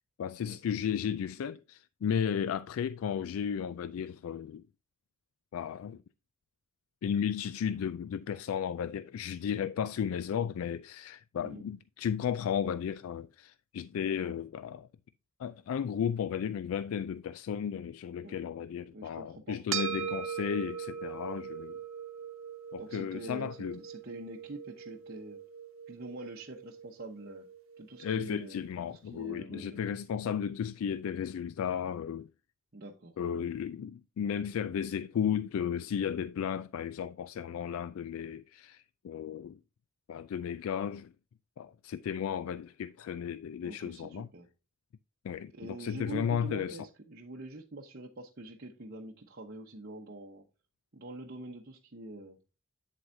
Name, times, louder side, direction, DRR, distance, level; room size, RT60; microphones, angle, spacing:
voice 1, 0.2-4.6 5.5-6.0 7.0-14.9 15.4-21.8 22.7-23.8 28.0-32.3 33.2-39.6 40.1-41.1 41.6-44.3 45.2-46.8, left 8 dB, 85° left, 0.3 m, -34 dB
voice 2, 18.9-20.0 22.8-25.4 25.9-27.5 27.8-29.9 32.7-33.1 43.6-44.5 45.5-50.4 50.9-52.4, right 1 dB, 50° right, 0.9 m, -45 dB
sound 1, 19.7-28.3, right 8 dB, 75° right, 0.9 m, -41 dB
8.4 x 7.8 x 2.7 m
head